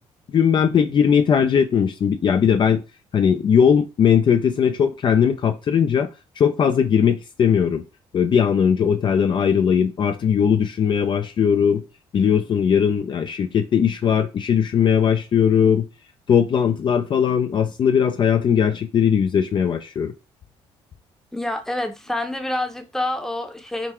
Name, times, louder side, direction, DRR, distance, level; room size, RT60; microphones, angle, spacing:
voice 1, 0.3-2.8 3.1-6.1 6.4-7.8 8.1-11.8 12.1-15.9 16.3-20.1, left 7 dB, 45° left, 0.4 m, -19 dB
voice 2, 21.3-23.9, left 1 dB, 5° left, 0.7 m, -27 dB
3.8 x 2.4 x 4.3 m
cardioid pair, 85°, 11 cm